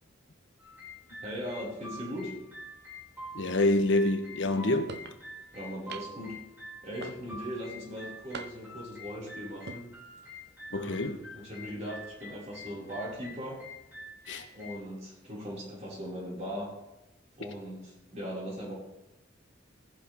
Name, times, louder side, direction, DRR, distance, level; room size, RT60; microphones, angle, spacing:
sound 1, 0.6-14.7, left 1 dB, 10° right, 4.0 m, -46 dB
voice 1, 1.2-2.3 5.5-6.3 6.8-9.8 10.7-13.6 14.5-16.7 17.3-18.7, equal, 35° right, -6 dB, 5.2 m, -39 dB
voice 2, 3.3-4.9 10.7-11.2 14.3-14.5, left 2 dB, 65° left, 7 dB, 1.1 m, -27 dB
sound 2, 4.9-5.2 5.9-6.3 7.0-7.5 8.3-8.8 9.5-9.8, right 5 dB, 55° right, 0.5 m, -43 dB
16.0 x 11.5 x 3.5 m, 0.94 s
head